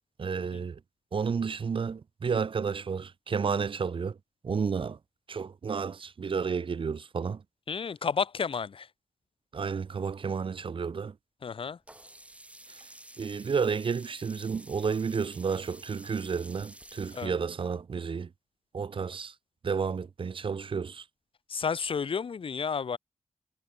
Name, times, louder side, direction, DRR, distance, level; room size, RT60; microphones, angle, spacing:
voice 1, 0.2-0.8 1.1-4.2 4.4-5.0 5.3-7.4 9.5-11.2 12.7-12.8 13.2-18.3 18.7-19.3 19.6-21.0, right 6 dB, 45° right, 0.6 m, -31 dB
voice 2, 7.7-8.9 11.4-11.8 17.1-17.3 21.5-23.0, left 6 dB, 45° left, 0.6 m, -31 dB
Sink (filling or washing), 11.9-17.3, right 1 dB, 10° right, 5.5 m, -50 dB
wide cardioid pair, 175°, 13 cm